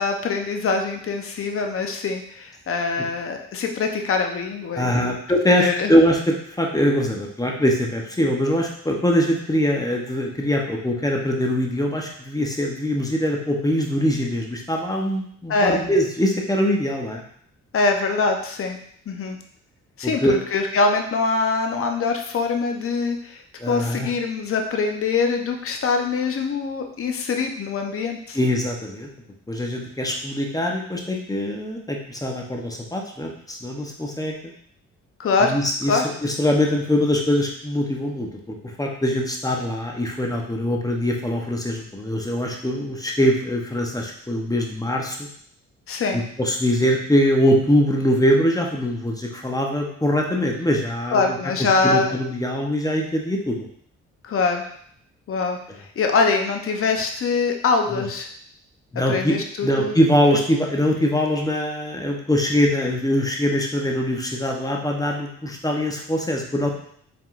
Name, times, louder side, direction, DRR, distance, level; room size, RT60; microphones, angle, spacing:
voice 1, 0.0-5.1 5.6-5.9 15.5-15.8 17.7-18.8 19.1-19.4 20.0-28.4 35.2-35.6 35.9-36.1 45.9-46.2 51.1-52.2 54.2-54.7 55.3-55.6 56.0-58.3 59.1-59.9, left 4 dB, 50° left, 4 dB, 0.7 m, -23 dB
voice 2, 4.7-17.2 20.0-20.4 23.6-24.1 28.3-29.1 29.5-34.4 35.4-45.3 46.1-51.2 51.8-53.7 57.9-58.0 58.9-59.4 59.6-66.7, equal, 10° left, 0 dB, 0.8 m, -22 dB
4.8 x 3.6 x 2.5 m, 0.64 s
cardioid pair, 80°, 29 cm